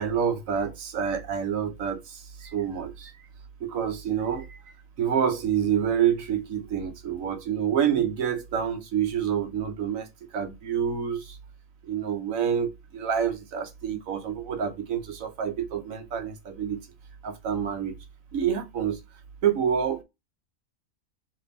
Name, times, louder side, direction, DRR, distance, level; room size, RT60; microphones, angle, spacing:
voice 1, 0.0-3.1 3.6-4.6 5.0-11.4 11.8-16.8 17.2-18.0 18.3-19.0 19.4-20.0, right 8 dB, 80° right, 1.3 m, -27 dB
3.3 x 3.3 x 4.0 m
omnidirectional pair, 1.4 m